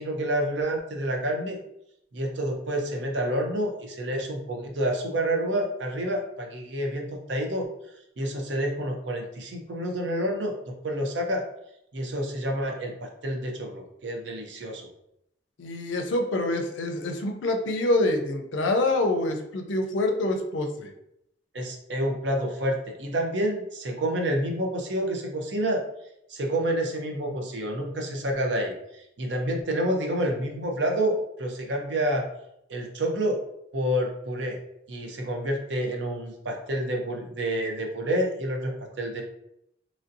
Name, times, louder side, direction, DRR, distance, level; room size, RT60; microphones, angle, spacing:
voice 1, 0.0-1.6 2.1-7.7 8.2-10.5 10.8-11.4 11.9-14.9 21.5-25.8 26.3-31.1 31.4-32.2 32.7-33.4 33.7-34.6 34.9-38.7 39.0-39.2, right 1 dB, 70° right, 1 dB, 0.6 m, -28 dB
voice 2, 15.6-20.9, left 2 dB, 80° left, 4 dB, 0.5 m, -26 dB
3.1 x 2.6 x 2.6 m, 0.78 s
head